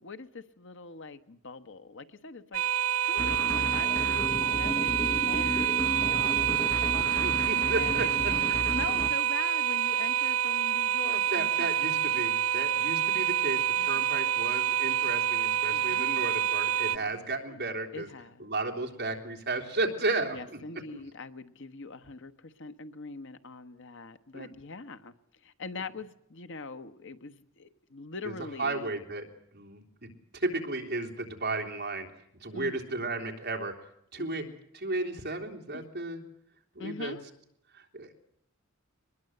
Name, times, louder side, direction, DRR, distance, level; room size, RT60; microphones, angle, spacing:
voice 1, 0.0-2.6 3.0-7.0 7.8-8.1 8.4-11.7 13.7-14.0 15.7-16.2 16.9-17.2 17.5-17.6 17.9-18.5 20.3-25.1 25.4-28.9 32.5-32.8 34.2-34.6 35.7-35.8 36.8-37.2, left 3 dB, 60° left, 9 dB, 1.2 m, -43 dB
sound 1, 2.5-17.0, right 11 dB, 70° right, 0.8 m, -27 dB
sound 2, 3.2-9.1, equal, 10° left, 1.1 m, -34 dB
voice 2, 6.9-8.3 11.0-18.1 18.4-20.6 24.3-24.5 28.3-28.4 28.6-29.3 29.5-32.1 32.4-33.7 34.1-34.4 34.7-36.2 36.7-37.1 37.7-38.1, right 2 dB, 50° right, 2 dB, 3.4 m, -34 dB
23.0 x 20.5 x 7.9 m, 0.75 s
head